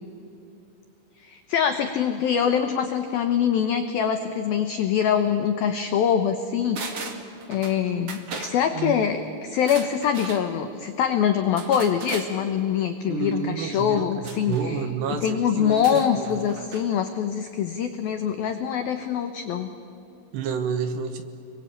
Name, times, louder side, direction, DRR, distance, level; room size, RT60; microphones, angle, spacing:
voice 1, 1.2-14.9 15.2-19.7, left 8 dB, 85° left, 7 dB, 2.1 m, -24 dB
sound 1, 6.7-7.8 8.1-8.6 9.5-10.4 11.6-12.3 14.2-14.7 15.6-16.9 17.2-17.3, right 4 dB, 50° right, 1.9 m, -37 dB
voice 2, 8.7-9.1 13.1-16.3 20.3-21.2, right 6 dB, 70° right, 8 dB, 3.0 m, -30 dB
29.5 x 22.5 x 8.7 m, 2.7 s
omnidirectional pair, 5.9 m